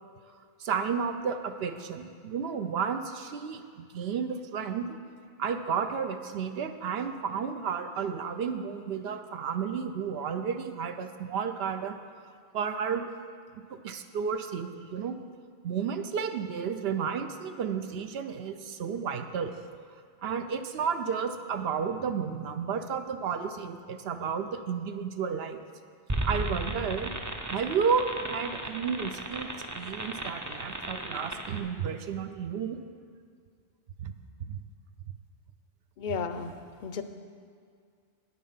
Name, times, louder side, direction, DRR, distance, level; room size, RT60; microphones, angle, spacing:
voice 1, 0.6-5.0 5.4-12.0 12.5-13.1 13.5-15.2 15.6-19.5 20.2-25.6 26.2-27.1 27.5-32.8 34.0-34.1 34.5-34.6, right 6 dB, 70° right, 8 dB, 0.8 m, -32 dB
sound 1, 26.1-31.6, right 2 dB, 20° right, 0.5 m, -35 dB
voice 2, 36.0-37.0, left 5 dB, 55° left, 10 dB, 0.6 m, -34 dB
9.4 x 8.7 x 5.6 m, 2.2 s
omnidirectional pair, 1.1 m